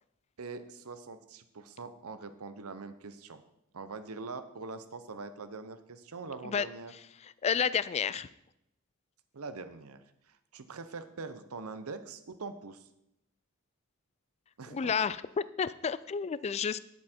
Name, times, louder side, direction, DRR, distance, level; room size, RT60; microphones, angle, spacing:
voice 1, 0.4-3.4 3.7-6.9 9.3-12.9 14.6-14.9, right 4 dB, 80° right, 11 dB, 0.8 m, -43 dB
voice 2, 7.4-8.3 14.7-15.2 15.6-16.8, left 6 dB, 30° left, 17 dB, 0.3 m, -30 dB
9.9 x 8.1 x 4.4 m, 0.82 s
head